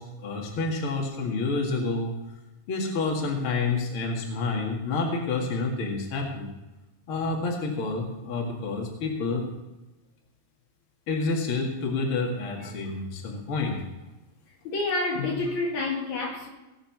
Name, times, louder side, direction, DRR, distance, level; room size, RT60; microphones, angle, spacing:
voice 1, 0.0-2.1 2.7-6.5 7.1-9.5 11.1-13.8, left 3 dB, 45° left, 2.5 m, -29 dB
voice 2, 14.6-16.5, left 3 dB, 60° left, 3.0 m, -28 dB
18.5 x 6.5 x 6.0 m
omnidirectional pair, 3.9 m